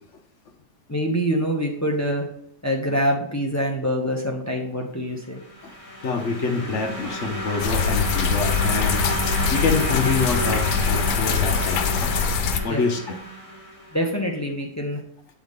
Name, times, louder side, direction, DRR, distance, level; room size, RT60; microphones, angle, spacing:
voice 1, 0.9-2.3 2.6-5.4 12.7-12.8 13.9-15.0, equal, 15° left, 0 dB, 0.5 m, -25 dB
sound 1, 5.3-14.0, equal, 30° right, 3.0 m, -31 dB
voice 2, 6.0-9.1 9.5-12.3 12.6-13.2, left 4 dB, 55° left, 4 dB, 1.0 m, -26 dB
sound 2, 7.6-12.6, left 6 dB, 80° left, 1.3 m, -23 dB
7.9 x 4.7 x 3.6 m, 0.66 s
omnidirectional pair, 1.8 m